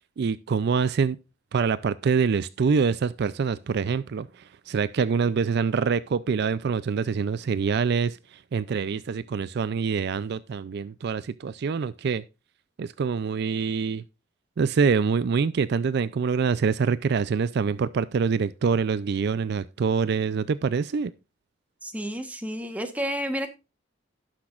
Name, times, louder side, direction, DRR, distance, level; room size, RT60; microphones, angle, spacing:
voice 1, 0.2-1.2 1.5-12.2 12.8-14.0 14.6-21.1, right 5 dB, 55° right, 0.4 m, -25 dB
voice 2, 21.8-23.5, equal, 5° right, 1.1 m, -30 dB
17.5 x 6.0 x 2.4 m
head